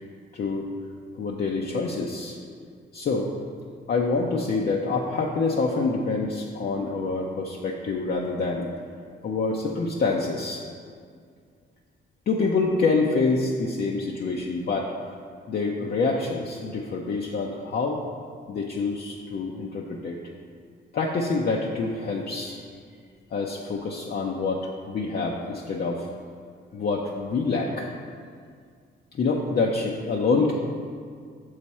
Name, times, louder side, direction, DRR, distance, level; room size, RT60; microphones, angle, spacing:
voice 1, 0.3-0.7 1.1-2.4 2.9-3.3 3.9-8.7 9.2-10.6 12.3-14.9 15.5-18.0 18.5-20.2 20.9-22.6 23.3-26.1 26.7-27.9 29.1-30.5, left 3 dB, 50° left, -1 dB, 0.6 m, -26 dB
6.7 x 4.8 x 4.2 m, 2.1 s
cardioid pair, 80°, 20 cm